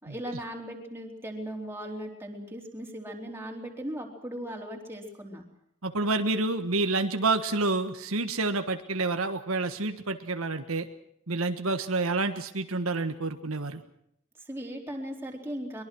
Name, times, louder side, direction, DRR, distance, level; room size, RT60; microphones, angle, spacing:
voice 1, 0.0-5.4 14.4-15.8, equal, 10° right, 1 dB, 3.9 m, -38 dB
voice 2, 5.8-10.9 11.3-13.8, right 3 dB, 75° right, 7 dB, 1.5 m, -28 dB
23.0 x 22.0 x 6.3 m, 0.75 s
head